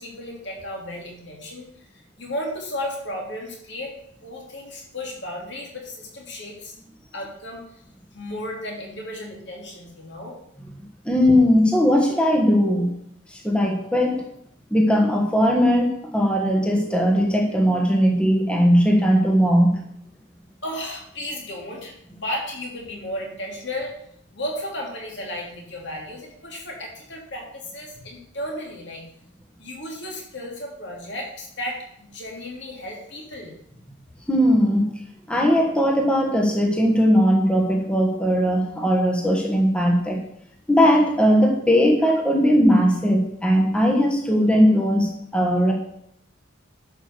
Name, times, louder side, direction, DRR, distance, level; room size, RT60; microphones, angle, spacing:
voice 1, 0.0-1.9 2.2-3.9 4.2-6.7 7.1-7.8 8.1-10.4 20.6-23.9 24.3-29.0 29.6-33.5, left 1 dB, 55° left, -1 dB, 3.1 m, -34 dB
voice 2, 11.0-12.9 13.3-14.3 14.7-19.8 34.3-35.0 35.3-40.2 40.7-45.7, equal, 5° left, 0 dB, 1.3 m, -19 dB
11.0 x 5.6 x 6.7 m, 0.71 s
head